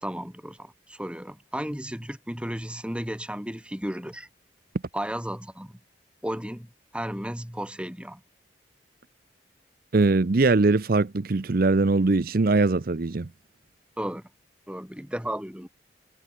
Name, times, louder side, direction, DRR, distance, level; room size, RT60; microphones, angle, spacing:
voice 1, 0.0-4.3 4.9-5.7 6.2-6.7 6.9-8.2 14.0-14.2 14.7-15.7, equal, 5° right, 2.5 m, -34 dB
voice 2, 9.9-13.3, right 3 dB, 55° right, 0.6 m, -21 dB
head